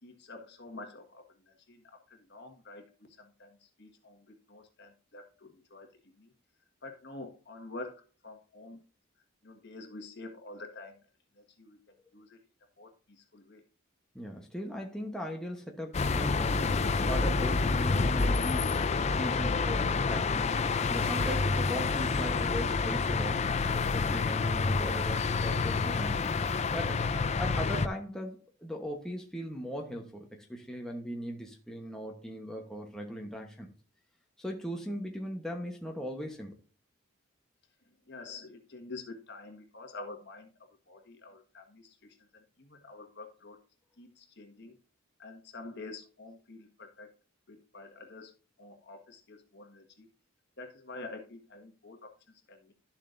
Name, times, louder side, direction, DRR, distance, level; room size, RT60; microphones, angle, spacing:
voice 1, 0.0-5.9 6.2-6.3 6.8-8.8 9.4-11.0 11.3-11.8 12.1-12.4 12.8-13.6 38.1-40.5 40.9-43.6 44.0-44.8 45.2-47.1 47.5-48.3 48.6-50.1 50.6-52.1 52.5-52.7, left 2 dB, 55° left, 1.6 m, -47 dB
voice 2, 14.1-20.6 20.9-23.5 23.7-26.3 26.7-27.0 27.4-33.7 34.4-36.6, equal, 5° left, 1.0 m, -39 dB
sound 1, 15.9-27.9, left 4 dB, 35° left, 0.4 m, -28 dB
12.0 x 7.2 x 2.6 m
head